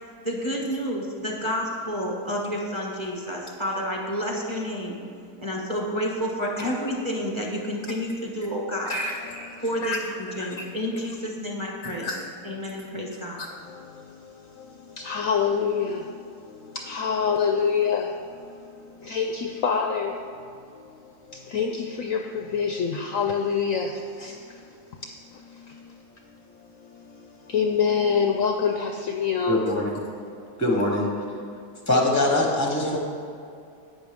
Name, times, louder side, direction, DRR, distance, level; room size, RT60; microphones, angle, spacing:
voice 1, 0.2-5.0 5.4-8.9 9.6-12.1 12.4-13.4, equal, 20° right, -2 dB, 1.1 m, -30 dB
voice 2, 8.8-10.0 10.3-10.7 11.8-12.7 13.4-29.7 30.3-30.6, left 6 dB, 70° left, 4 dB, 0.8 m, -28 dB
voice 3, 29.5-29.9 30.6-31.1 31.9-33.0, left 1 dB, 15° left, -1 dB, 0.5 m, -22 dB
11.0 x 8.5 x 3.6 m, 2.5 s
omnidirectional pair, 1.9 m